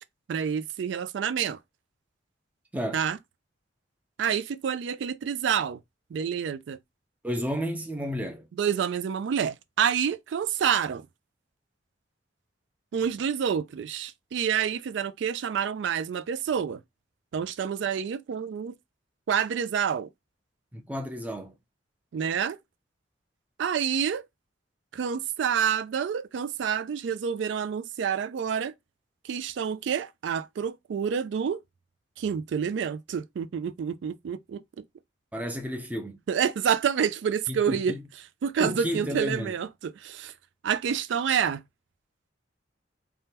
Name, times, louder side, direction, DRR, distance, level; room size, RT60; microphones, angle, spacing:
voice 1, 0.3-1.6 2.9-3.2 4.2-5.8 6.1-6.8 8.6-11.1 12.9-16.8 17.3-18.7 19.3-20.1 22.1-22.6 23.6-24.2 24.9-28.7 29.2-31.6 32.2-34.8 36.3-37.9 38.4-40.3 40.6-41.6, right 7 dB, 70° right, 0.3 m, -28 dB
voice 2, 2.7-3.1 7.2-8.5 20.7-21.5 35.3-36.2 37.5-38.0 38.6-39.6, equal, 10° right, 0.5 m, -32 dB
3.4 x 2.2 x 2.8 m
head